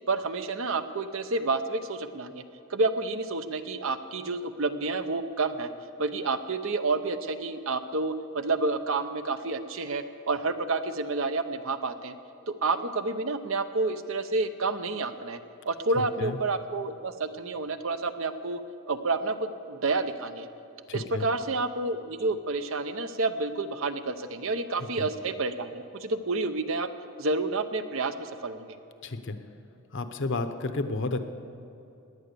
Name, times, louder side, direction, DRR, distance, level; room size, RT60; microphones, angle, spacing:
voice 1, 0.1-2.4 2.7-5.7 6.0-12.1 12.5-15.4 15.7-18.6 18.9-20.5 20.9-26.9 27.2-28.7, right 3 dB, 60° right, 9 dB, 0.8 m, -29 dB
voice 2, 16.0-16.4 20.9-21.3 25.0-25.1 29.0-29.4 29.9-31.2, left 3 dB, 55° left, 9 dB, 0.9 m, -31 dB
17.5 x 10.5 x 6.8 m, 2.9 s
head